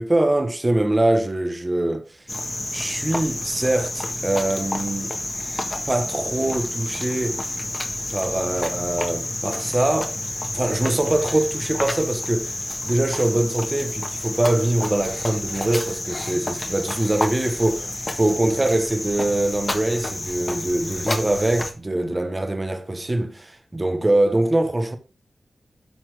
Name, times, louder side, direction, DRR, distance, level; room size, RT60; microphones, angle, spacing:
voice 1, 0.0-2.1 2.7-5.1 5.9-7.4 8.1-10.1 10.5-12.6 12.8-17.8 18.2-25.0, right 1 dB, 25° right, 1.2 m, -23 dB
Cricket, 2.3-21.7, left 2 dB, 25° left, 1.6 m, -30 dB
12.5 x 4.2 x 4.9 m
wide cardioid pair, 120°, 0 cm